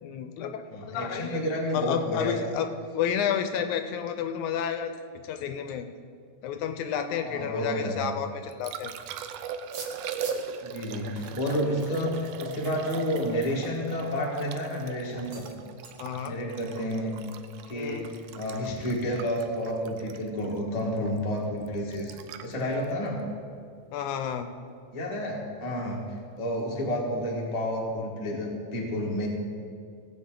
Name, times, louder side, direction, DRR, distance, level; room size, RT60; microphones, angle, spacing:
voice 1, 0.0-1.4 1.7-2.7 2.9-5.0 5.2-5.9 6.4-8.9 16.0-16.3 17.7-18.1 23.9-24.5, left 8 dB, 80° left, 7 dB, 2.0 m, -31 dB
voice 2, 0.7-2.5 7.1-8.1 10.6-15.5 16.2-17.1 17.7-22.2 22.4-23.3 24.9-26.0 26.4-29.3, equal, 25° left, -2 dB, 0.9 m, -30 dB
Liquid, 8.2-24.3 27.1-27.3, right 7 dB, 85° right, 1.4 m, -41 dB
sound 1, 9.6-10.6 11.2-14.2 14.6-14.8 15.2-15.6 15.8-16.0, right 4 dB, 60° right, 1.1 m, -46 dB
17.5 x 8.2 x 3.8 m, 2.2 s
omnidirectional pair, 3.5 m